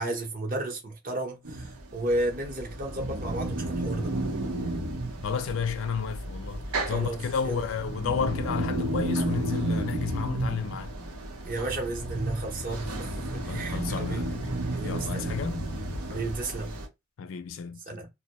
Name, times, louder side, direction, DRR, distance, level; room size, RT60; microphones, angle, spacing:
voice 1, 0.0-4.1 6.9-7.2 7.5-7.6 11.4-13.1 13.4-14.2 14.7-15.4 16.1-16.7 17.9-18.1, right 2 dB, 40° right, 0.7 m, -33 dB
sound 1, 1.4-16.9, right 2 dB, 85° right, 0.7 m, -32 dB
voice 2, 5.2-11.0 13.5-14.5 14.8-15.7 17.2-17.8, left 6 dB, 60° left, 0.3 m, -31 dB
2.2 x 2.0 x 2.8 m
head